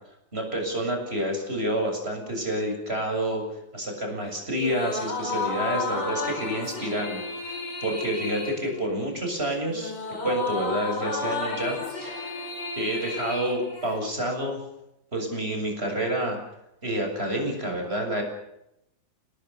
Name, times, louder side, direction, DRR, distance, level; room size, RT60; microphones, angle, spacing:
voice 1, 0.3-3.4 3.7-9.9 10.2-12.5 12.8-14.6 15.1-16.4 16.8-18.2, right 1 dB, 30° right, 2 dB, 7.7 m, -29 dB
sound 1, 4.5-14.3, left 3 dB, 60° left, 5.5 m, -33 dB
29.0 x 20.0 x 6.9 m, 0.84 s
omnidirectional pair, 2.0 m